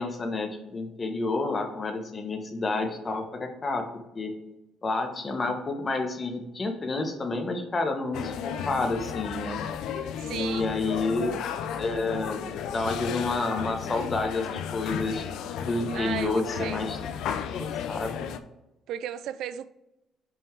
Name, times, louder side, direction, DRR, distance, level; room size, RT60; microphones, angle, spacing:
voice 1, 0.0-3.9 4.1-4.3 4.8-9.6 10.3-11.4 11.8-12.5 12.7-15.2 15.6-17.0 17.5-18.3, left 3 dB, 25° left, 5 dB, 1.1 m, -29 dB
sound 1, 8.1-18.4, left 8 dB, 85° left, 0.5 m, -34 dB
voice 2, 10.2-10.7 15.9-17.0 18.9-19.7, right 10 dB, 75° right, 14 dB, 0.4 m, -35 dB
5.6 x 5.3 x 4.6 m, 0.94 s
cardioid pair, 140°, 0 cm